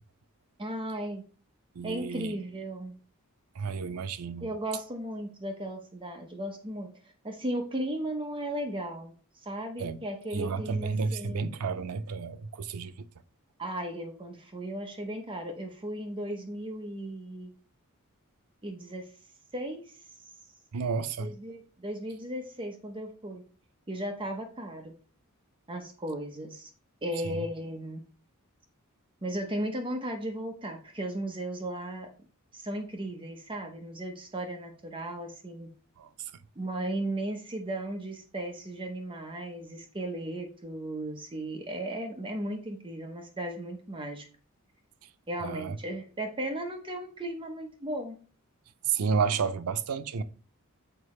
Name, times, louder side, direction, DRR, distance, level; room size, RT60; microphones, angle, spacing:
voice 1, 0.6-1.2 1.8-2.9 4.4-6.9 7.2-9.1 9.5-11.5 13.6-17.5 18.6-19.0 19.5-19.8 21.2-23.4 23.9-24.9 25.7-26.7 27.0-28.0 29.2-32.1 32.5-35.7 36.6-44.2 45.3-48.1, right 1 dB, 25° right, 0.8 m, -36 dB
voice 2, 1.7-2.3 3.5-4.5 9.8-10.0 10.3-13.0 20.7-21.3 27.2-27.4 36.0-36.3 45.4-45.8 48.8-50.2, right 5 dB, 85° right, 0.5 m, -31 dB
6.8 x 4.7 x 3.1 m
head